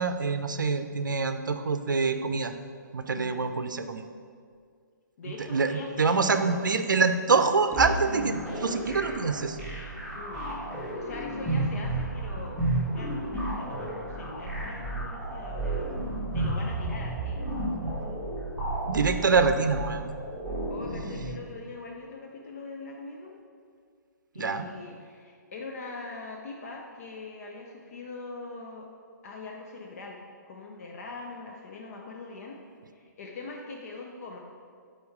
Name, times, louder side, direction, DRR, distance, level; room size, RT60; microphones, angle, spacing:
voice 1, 0.0-2.5 2.9-4.0 5.5-9.6 18.8-20.0 24.4-24.7, right 4 dB, 75° right, 9 dB, 0.5 m, -25 dB
voice 2, 3.1-3.6 5.2-6.6 10.1-10.5 10.9-16.1 16.3-17.5 17.8-18.3 20.7-23.4 24.3-28.9 29.2-30.2 30.5-32.6 32.9-34.4, left 3 dB, 45° left, 0 dB, 0.7 m, -42 dB
sound 1, 7.7-21.3, right 2 dB, 5° left, 1.8 m, -32 dB
6.9 x 4.4 x 4.9 m, 2.1 s
figure-of-eight pair, 130°, 11 cm